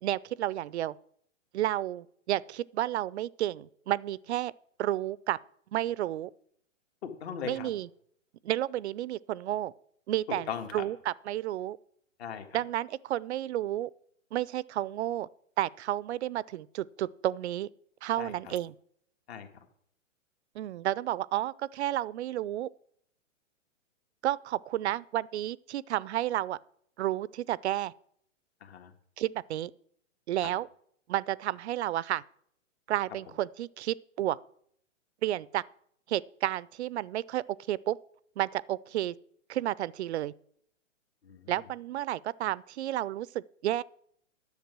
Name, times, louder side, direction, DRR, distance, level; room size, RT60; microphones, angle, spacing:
voice 1, 0.0-0.9 1.5-4.5 4.8-5.4 5.7-6.3 7.4-7.9 8.4-9.7 10.1-10.5 10.7-11.8 12.5-13.9 14.3-15.3 15.6-17.7 18.0-18.7 20.6-22.7 24.2-26.6 27.0-27.9 29.2-29.7 30.3-30.7 31.1-32.2 32.9-34.4 35.2-35.6 36.1-38.0 38.4-39.2 39.5-40.3 41.5-43.8, right 13 dB, 60° right, 0.5 m, -31 dB
voice 2, 7.0-7.7 10.3-10.8 12.2-12.6 18.2-18.5 19.3-19.5 28.6-28.9 30.4-30.5 41.2-41.5, left 8 dB, 55° left, 1.7 m, -39 dB
10.5 x 6.8 x 6.0 m
hypercardioid pair, 145°, 38 cm